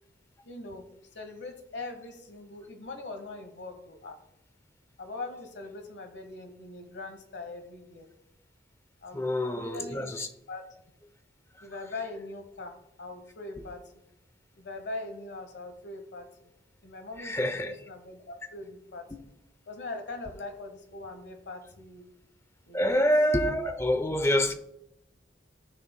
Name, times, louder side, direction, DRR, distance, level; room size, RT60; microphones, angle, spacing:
voice 1, 0.4-4.2 5.0-8.1 9.0-10.1 10.5-10.6 11.6-13.8 14.6-16.5 16.8-19.1 19.7-22.1 22.7-23.0 24.4-24.5, left 2 dB, 75° left, 1.1 m, -41 dB
voice 2, 9.1-10.3 11.5-11.7 13.6-13.7 17.2-17.8 19.1-19.2 22.7-24.5, equal, 15° left, 0.5 m, -27 dB
15.5 x 6.0 x 2.2 m
head